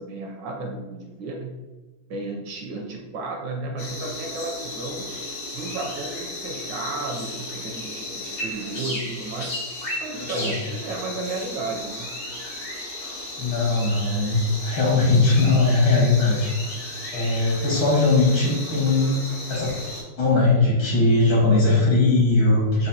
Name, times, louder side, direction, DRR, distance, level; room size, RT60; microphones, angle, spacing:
voice 1, 0.0-1.6 2.1-5.1 5.5-9.5 10.0-12.1, right 3 dB, 75° right, 1 dB, 1.2 m, -33 dB
sound 1, 3.8-20.0, left 1 dB, 85° left, 2.3 m, -34 dB
voice 2, 10.1-10.5 13.4-16.5 17.1-19.1 19.5-19.8 20.2-22.9, left 3 dB, 70° left, -4 dB, 2.1 m, -20 dB
5.1 x 2.5 x 2.7 m, 1.2 s
omnidirectional pair, 2.2 m